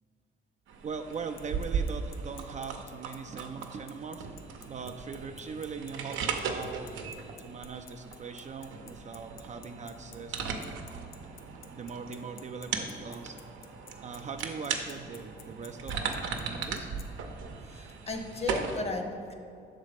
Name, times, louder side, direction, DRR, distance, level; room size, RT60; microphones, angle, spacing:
sound 1, 0.7-18.8, right 5 dB, 80° right, 0.7 m, -38 dB
voice 1, 0.8-4.3 4.7-6.9 7.4-10.7 11.7-13.4 14.0-16.9, right 5 dB, 35° right, 6 dB, 0.4 m, -41 dB
Bicycle, 1.1-17.0, left 10 dB, 85° left, 0.5 m, -51 dB
voice 2, 17.6-19.3, left 3 dB, 30° left, 5 dB, 0.8 m, -35 dB
6.5 x 4.1 x 5.0 m, 2.6 s
cardioid pair, 90°, 20 cm